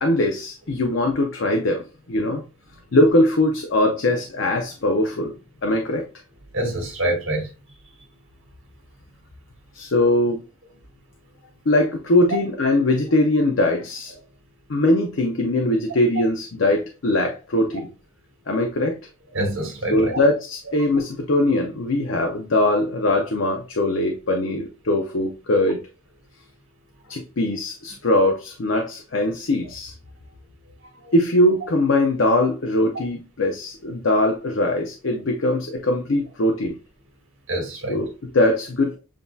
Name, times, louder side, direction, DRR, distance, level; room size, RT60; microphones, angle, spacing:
voice 1, 0.0-2.4 2.9-6.1 9.7-10.4 11.7-14.1 14.7-17.9 18.5-19.0 19.9-25.8 27.1-29.9 31.1-36.8 37.9-39.0, left 1 dB, 65° left, 0.6 m, -21 dB
voice 2, 6.5-7.5 19.3-20.1 31.0-31.1 37.5-38.0, right 1 dB, 75° right, 1.7 m, -25 dB
7.4 x 2.6 x 2.3 m
head